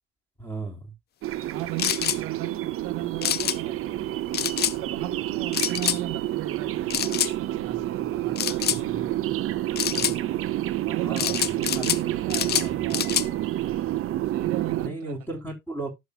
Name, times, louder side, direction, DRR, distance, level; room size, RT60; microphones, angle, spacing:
voice 1, 0.4-0.9 11.0-12.1 12.5-13.0 14.8-15.9, right 2 dB, 5° left, 4.3 m, -36 dB
sound 1, 1.2-14.9, right 14 dB, 35° right, 0.7 m, -29 dB
voice 2, 1.4-4.3 4.7-9.2 9.9-10.4 10.8-13.4 14.2-15.2, right 13 dB, 50° right, 1.6 m, -38 dB
sound 2, 1.8-2.2 3.2-3.6 4.3-4.8 5.5-6.0 6.9-7.3 8.4-8.8 9.8-10.2 11.2-12.0 12.3-13.3, left 11 dB, 25° left, 0.5 m, -26 dB
11.5 x 7.2 x 2.5 m
figure-of-eight pair, 70°, 41 cm